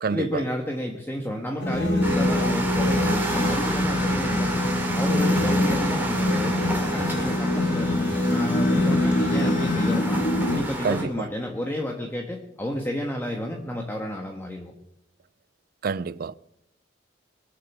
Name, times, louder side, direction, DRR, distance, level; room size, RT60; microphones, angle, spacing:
voice 1, 0.1-4.7 5.0-10.2 10.5-14.7, equal, 10° left, 1.3 m, -31 dB
sound 1, 1.6-10.6, left 1 dB, 65° left, 2.0 m, -24 dB
sound 2, 2.0-11.0, right 2 dB, 10° right, 2.6 m, -31 dB
sound 3, 3.0-10.0, left 6 dB, 45° left, 4.3 m, -42 dB
voice 2, 15.8-16.3, right 5 dB, 50° right, 0.4 m, -26 dB
21.5 x 7.6 x 7.3 m
head